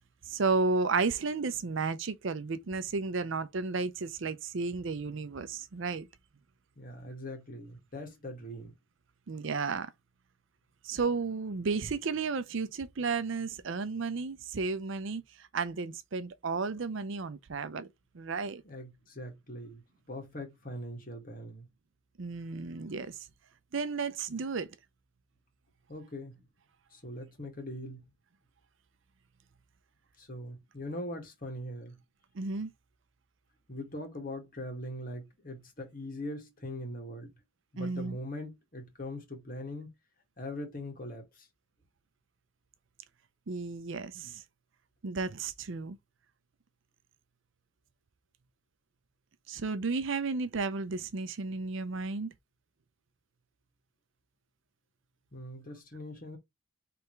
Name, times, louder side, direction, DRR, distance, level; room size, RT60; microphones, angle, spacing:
voice 1, 0.3-6.1 9.3-9.9 10.8-15.2 15.5-17.9 18.1-18.6 22.2-23.1 23.7-24.7 32.4-32.7 37.8-38.2 43.5-44.4 45.0-46.0 49.5-52.3, right 4 dB, 60° right, 0.5 m, -33 dB
voice 2, 6.8-8.7 18.6-19.8 20.1-21.7 25.9-26.4 26.9-28.1 30.2-32.0 33.7-37.3 37.7-39.9 40.4-41.5 55.3-56.4, left 1 dB, 40° left, 1.8 m, -41 dB
4.7 x 3.4 x 3.2 m
head